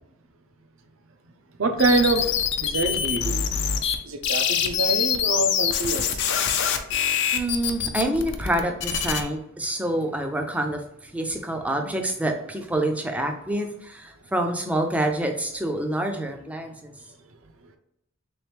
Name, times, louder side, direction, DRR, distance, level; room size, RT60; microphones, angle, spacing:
voice 1, 1.6-2.3 2.6-3.5 4.0-6.1, right 3 dB, 75° right, 7 dB, 0.5 m, -24 dB
sound 1, 1.8-4.0 4.2-9.2, left 8 dB, 55° left, 0.4 m, -24 dB
voice 2, 7.3-16.9, right 1 dB, 5° right, 4 dB, 0.4 m, -27 dB
3.5 x 3.0 x 3.3 m, 0.79 s
head